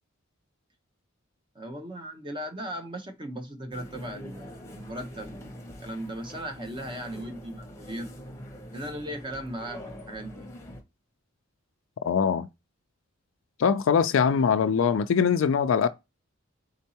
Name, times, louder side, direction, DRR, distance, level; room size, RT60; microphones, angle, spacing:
voice 1, 1.5-8.2 8.7-10.5, equal, 25° right, 0.8 m, -38 dB
sound 1, 3.7-10.8, equal, 15° left, 0.9 m, -44 dB
voice 2, 12.0-12.5 13.6-15.9, left 6 dB, 70° left, 0.3 m, -22 dB
4.4 x 3.8 x 2.8 m
head